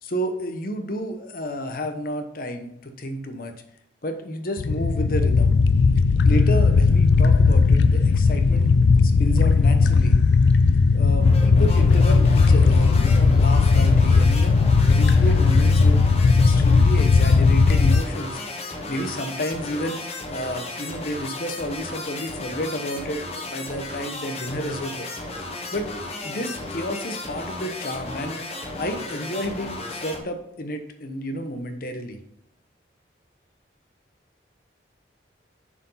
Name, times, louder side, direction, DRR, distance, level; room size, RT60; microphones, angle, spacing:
voice 1, 0.0-3.5 4.0-5.5 6.2-8.7 9.0-10.2 10.9-14.6 14.9-16.0 16.4-18.4 18.9-20.0 20.3-25.1 25.7-25.9 26.2-32.2, equal, 50° left, 7 dB, 0.9 m, -31 dB
sound 1, 4.6-18.0, left 4 dB, 70° left, 0.3 m, -17 dB
sound 2, 11.2-30.2, left 2 dB, 35° left, 1.1 m, -34 dB
7.0 x 4.6 x 5.6 m, 0.78 s
head